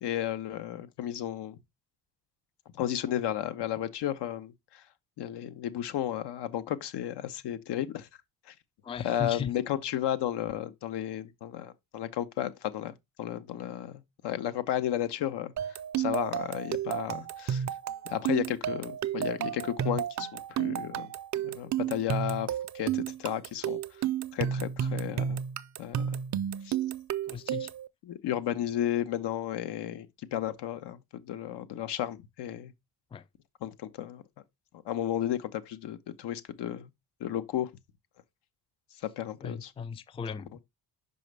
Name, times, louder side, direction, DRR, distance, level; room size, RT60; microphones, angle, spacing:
voice 1, 0.0-1.6 2.7-4.8 5.2-8.1 8.5-8.6 9.0-15.5 16.0-17.6 18.0-21.1 21.4-23.8 24.3-25.4 25.8-26.2 26.6-26.8 28.1-32.7 33.6-34.2 34.8-36.9 37.2-37.7 39.2-39.7, left 11 dB, 75° left, 0.9 m, -33 dB
voice 2, 8.8-9.5 27.3-27.7 33.1-33.3 39.4-40.6, left 7 dB, 15° left, 0.4 m, -37 dB
sound 1, 15.6-27.9, right 9 dB, 45° right, 0.5 m, -32 dB
5.4 x 5.2 x 3.3 m
supercardioid pair, 70°, 42 cm